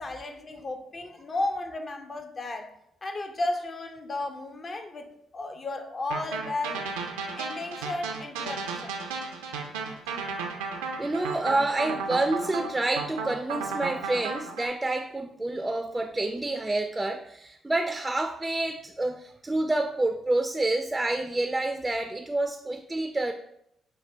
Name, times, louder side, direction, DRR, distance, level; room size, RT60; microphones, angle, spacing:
voice 1, 0.0-2.7 3.0-6.9 7.4-9.0, left 2 dB, 40° left, 0.6 m, -34 dB
sound 1, 6.1-14.7, right 4 dB, 90° right, 0.4 m, -34 dB
voice 2, 11.0-23.3, right 2 dB, 20° right, 0.4 m, -28 dB
6.3 x 2.2 x 3.3 m
hypercardioid pair, 50°, 0 cm